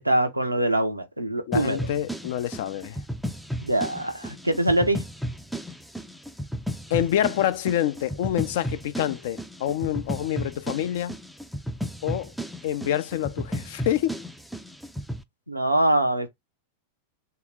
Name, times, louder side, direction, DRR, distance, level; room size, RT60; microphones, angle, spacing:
voice 1, 0.0-1.9 3.6-5.0 15.5-16.3, right 1 dB, 85° right, 0.7 m, -23 dB
voice 2, 1.5-3.0 6.9-11.2 12.0-12.3 12.6-14.2, left 11 dB, 55° left, 0.5 m, -27 dB
sound 1, 1.5-15.2, equal, ahead, 0.4 m, -34 dB
3.5 x 2.9 x 4.6 m
figure-of-eight pair, 90°, 0 cm